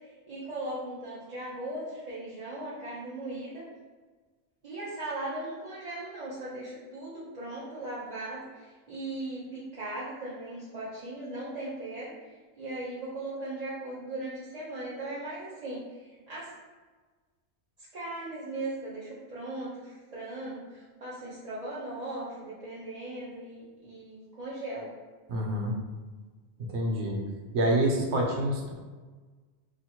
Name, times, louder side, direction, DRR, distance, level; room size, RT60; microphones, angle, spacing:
voice 1, 0.3-3.6 4.6-12.1 12.6-15.8 16.3-16.5 17.9-24.9, right 2 dB, 40° right, -9 dB, 0.8 m, -38 dB
voice 2, 25.3-25.7 26.7-27.2 27.5-28.7, right 1 dB, 85° right, 1 dB, 1.0 m, -27 dB
3.1 x 2.9 x 4.2 m, 1.4 s
omnidirectional pair, 1.1 m